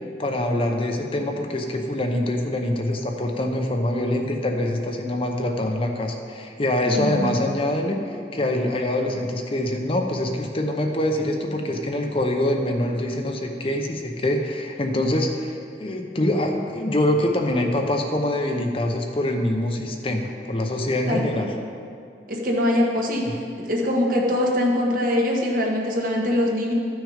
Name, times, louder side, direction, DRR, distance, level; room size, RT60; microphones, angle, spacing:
voice 1, 0.2-21.5, left 1 dB, 30° left, 3 dB, 0.7 m, -24 dB
voice 2, 6.9-7.3 21.1-21.5 22.3-23.4 23.7-26.7, left 1 dB, 50° right, -1 dB, 1.5 m, -23 dB
14.0 x 6.3 x 5.0 m, 2.4 s
head